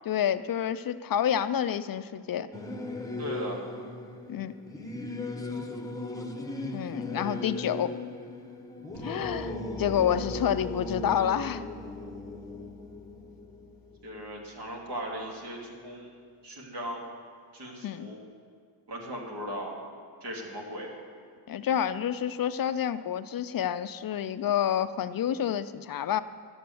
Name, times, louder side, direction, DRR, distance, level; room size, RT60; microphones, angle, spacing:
voice 1, 0.0-2.5 4.3-4.5 6.7-7.9 9.0-9.5 9.8-11.6 17.8-18.1 21.5-26.2, left 9 dB, 55° left, 13 dB, 0.4 m, -28 dB
Singing / Musical instrument, 2.5-14.4, left 2 dB, 10° left, 0.9 m, -38 dB
voice 2, 3.2-3.6 14.0-16.1 16.4-17.0 17.5-18.2 18.9-19.8 20.2-20.9, equal, 65° right, -1 dB, 2.8 m, -37 dB
sound 1, 8.9-14.9, equal, 85° right, 3.7 m, -46 dB
12.5 x 8.2 x 7.7 m, 2.1 s
wide cardioid pair, 110°, 43 cm